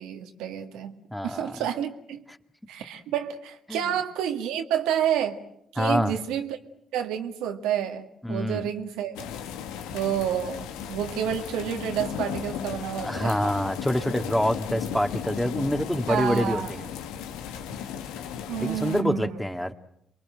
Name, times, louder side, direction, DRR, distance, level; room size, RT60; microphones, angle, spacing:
voice 1, 0.0-1.0 1.2-2.2 2.7-5.4 5.7-6.6 6.9-9.3 9.9-13.5 16.1-16.7 18.5-19.4, right 9 dB, 80° right, 5 dB, 1.9 m, -29 dB
voice 2, 1.1-1.5 3.7-3.9 5.8-6.2 8.2-8.7 12.9-16.9 18.6-19.7, left 1 dB, 5° left, 6 dB, 2.2 m, -26 dB
sound 1, 9.1-19.0, left 8 dB, 85° left, 1.5 m, -36 dB
27.5 x 23.0 x 7.7 m, 0.77 s
hypercardioid pair, 45°, 0 cm